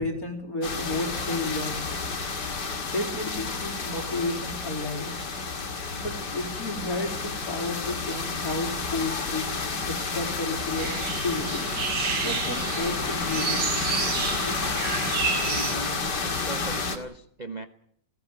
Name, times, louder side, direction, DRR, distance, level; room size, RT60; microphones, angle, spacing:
voice 1, 0.0-1.9 2.9-5.1 5.9-11.7 12.2-13.7 14.4-14.6, left 2 dB, 50° left, 3 dB, 4.1 m, -32 dB
sound 1, 0.6-17.0, left 4 dB, 70° left, 2.8 m, -30 dB
sound 2, 10.8-15.8, right 5 dB, 80° right, 2.5 m, -30 dB
voice 2, 15.1-17.7, right 2 dB, 30° right, 7 dB, 1.0 m, -39 dB
20.0 x 16.0 x 9.0 m, 0.66 s
omnidirectional pair, 1.9 m